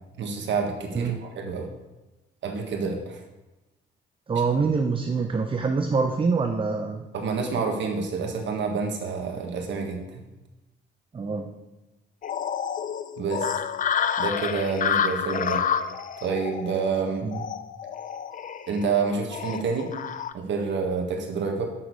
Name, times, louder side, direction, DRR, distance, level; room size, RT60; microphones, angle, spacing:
voice 1, 0.2-1.7 2.4-3.2 7.1-10.2 13.2-13.5 14.2-15.6 16.2-17.2 18.7-19.9 20.3-21.7, right 5 dB, 65° right, 2 dB, 1.5 m, -28 dB
voice 2, 4.3-7.0 11.1-11.5 17.2-17.4, right 4 dB, 25° right, 5 dB, 0.6 m, -25 dB
sound 1, 12.2-20.3, left 8 dB, 40° left, 0.5 m, -29 dB
7.7 x 6.1 x 4.7 m, 1.1 s
cardioid pair, 90°, 20 cm